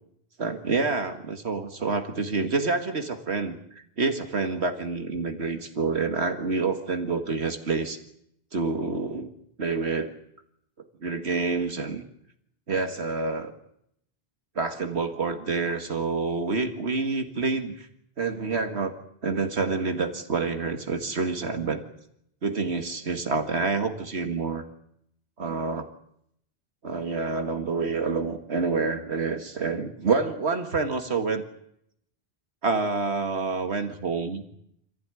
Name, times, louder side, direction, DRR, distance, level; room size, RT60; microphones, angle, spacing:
voice 1, 0.4-8.0 8.5-9.3 9.6-10.1 11.0-12.0 12.7-13.5 14.6-17.9 18.2-18.9 19.2-21.8 22.4-24.6 25.4-25.9 26.8-31.4 32.6-34.4, right 4 dB, 75° right, 6 dB, 2.1 m, -27 dB
26.5 x 15.0 x 9.8 m, 0.75 s
omnidirectional pair, 1.1 m